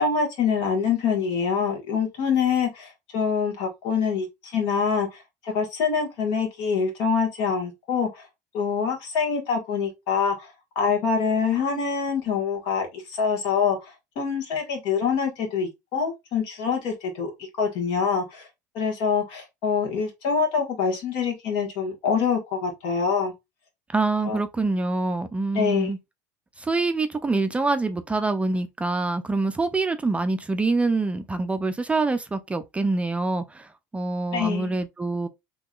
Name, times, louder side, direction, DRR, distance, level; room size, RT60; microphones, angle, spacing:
voice 1, 0.0-8.2 8.5-10.5 10.7-18.5 18.7-23.3 24.2-24.4 25.5-25.9 34.3-34.7, left 6 dB, 65° left, 1.5 m, -25 dB
voice 2, 23.9-26.0 26.6-35.3, right 3 dB, 15° right, 0.4 m, -25 dB
3.5 x 2.9 x 2.3 m
hypercardioid pair, 85°, 9 cm